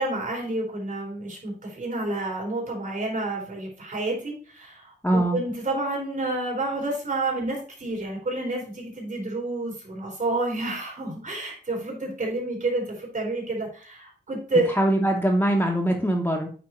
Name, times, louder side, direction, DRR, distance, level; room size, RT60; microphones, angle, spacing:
voice 1, 0.0-14.7, right 2 dB, 50° right, -1 dB, 4.0 m, -29 dB
voice 2, 5.0-5.4 14.8-16.5, right 1 dB, 10° left, 0 dB, 1.0 m, -22 dB
8.8 x 3.5 x 4.4 m, 0.40 s
wide cardioid pair, 115°, 18 cm